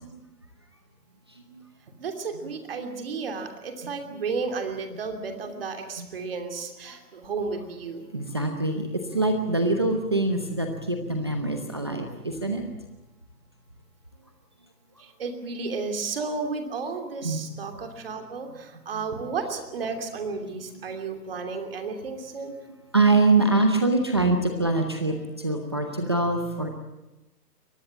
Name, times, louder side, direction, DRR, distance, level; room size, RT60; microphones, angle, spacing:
voice 1, 2.0-8.1 15.0-22.5, right 4 dB, 35° right, 5 dB, 3.0 m, -33 dB
voice 2, 8.1-12.6 17.2-17.4 22.9-26.7, right 2 dB, 15° right, 4 dB, 0.8 m, -24 dB
22.5 x 19.0 x 8.7 m, 1.0 s
hypercardioid pair, 175°, 49 cm